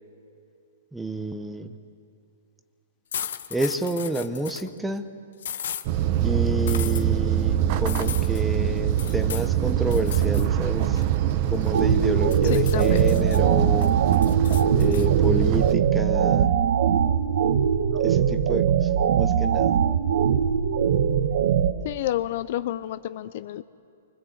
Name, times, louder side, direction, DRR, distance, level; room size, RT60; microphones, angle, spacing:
voice 1, 0.9-1.7 3.5-5.1 6.2-11.0 11.5-13.9 14.7-16.5 18.0-19.8, right 2 dB, 5° right, 10 dB, 0.8 m, -29 dB
sound 1, 3.1-4.7 5.4-5.9 6.7-7.0 7.9-8.4 9.0-9.5 9.9-10.5 10.8-11.9 12.3-13.4 13.8-15.1, left 9 dB, 70° left, 1.0 m, -36 dB
sound 2, 5.8-15.7, right 11 dB, 35° right, 0.8 m, -23 dB
sound 3, 11.7-21.7, right 8 dB, 65° right, 1.1 m, -22 dB
voice 2, 12.4-13.0 21.8-23.6, left 13 dB, 45° left, 15 dB, 0.6 m, -29 dB
28.0 x 24.5 x 8.0 m, 2.5 s
hypercardioid pair, 165°, 0 cm